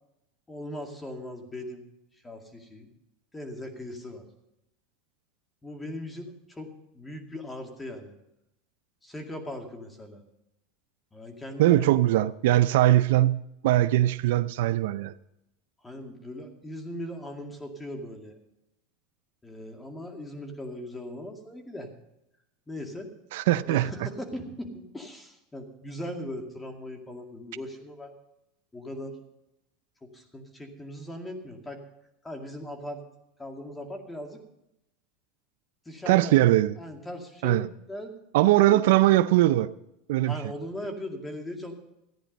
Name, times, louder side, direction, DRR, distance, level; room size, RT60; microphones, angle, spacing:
voice 1, 0.5-1.8 2.2-2.9 3.3-4.2 5.6-6.7 6.9-8.1 9.0-10.2 11.1-12.0 15.8-18.4 19.4-21.9 22.7-23.1 23.6-28.1 28.7-29.2 30.0-31.8 32.2-33.0 33.4-34.4 35.9-36.4 36.8-38.2 38.7-38.8 40.3-41.7, left 1 dB, 10° left, 2.2 m, -39 dB
voice 2, 11.6-15.1 23.3-23.9 36.1-36.7 37.4-37.7 38.3-39.7 40.1-40.3, right 15 dB, 75° right, 0.5 m, -21 dB
14.5 x 10.0 x 5.3 m
supercardioid pair, 135°, 0 cm